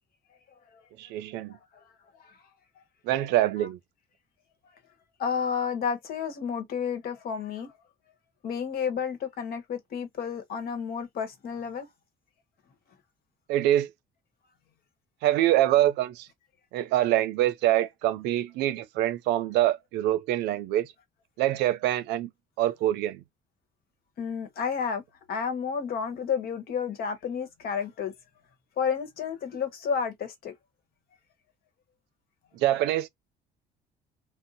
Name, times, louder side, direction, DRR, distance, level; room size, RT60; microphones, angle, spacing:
voice 1, 1.0-1.6 3.0-3.8 13.5-13.9 15.2-16.3 16.7-20.9 21.4-22.3 22.6-23.2 32.5-33.1, right 13 dB, 90° right, 0.5 m, -25 dB
voice 2, 5.2-7.7 8.4-11.9 24.2-25.0 25.3-28.1 28.8-30.5, left 6 dB, 65° left, 1.1 m, -31 dB
2.7 x 2.1 x 3.9 m
cardioid pair, 110°, 17 cm